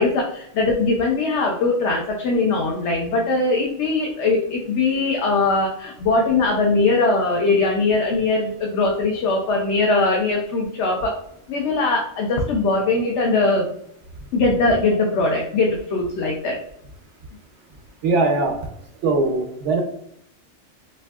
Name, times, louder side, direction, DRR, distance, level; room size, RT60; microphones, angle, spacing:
voice 1, 0.0-11.2 11.5-13.7 14.3-16.6, left 3 dB, 80° left, -1 dB, 1.0 m, -21 dB
voice 2, 18.0-18.6 19.0-19.8, right 3 dB, 85° right, 2 dB, 1.1 m, -20 dB
4.4 x 2.6 x 2.3 m, 0.70 s
omnidirectional pair, 1.2 m